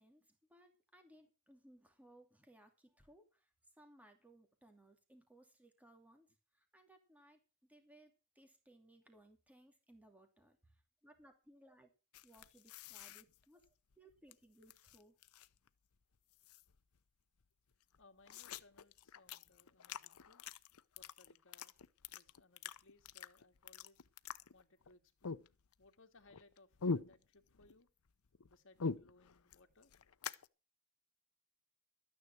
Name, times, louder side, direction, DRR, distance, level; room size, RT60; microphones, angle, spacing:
voice 1, 0.0-3.5 3.8-6.3 6.5-7.4 7.7-10.8 11.0-11.9 12.2-15.1, right 1 dB, 5° right, 5 dB, 2.6 m, -64 dB
sound 1, 12.1-14.3 14.6-15.7 15.9-16.0 16.3-17.0 17.4-17.5 17.7-24.9 25.2-25.9 26.2-27.8 28.1-30.5, left 4 dB, 80° left, 0.7 m, -45 dB
voice 2, 18.0-20.4 21.0-21.8 22.1-24.0 24.5-25.4 25.8-27.9 28.5-29.9, left 2 dB, 60° left, 4 dB, 2.1 m, -66 dB
13.0 x 9.6 x 6.0 m, 0.31 s
head